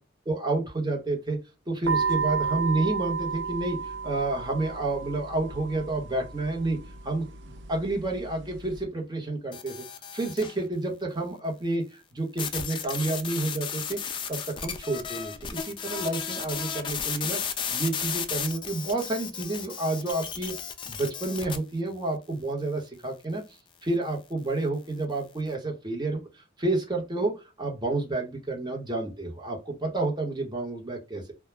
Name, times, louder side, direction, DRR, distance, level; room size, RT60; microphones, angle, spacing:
voice 1, 0.3-1.4 1.7-6.8 7.0-9.7 10.1-11.8 12.1-14.0 14.3-17.4 17.7-20.5 20.8-23.4 23.8-31.3, right 2 dB, 20° right, 0 dB, 0.8 m, -30 dB
sound 1, 1.8-8.8, right 5 dB, 65° right, 0.4 m, -33 dB
sound 2, 9.5-10.6 12.4-21.6, left 7 dB, 25° left, 0.3 m, -34 dB
2.2 x 2.0 x 3.1 m, 0.28 s
head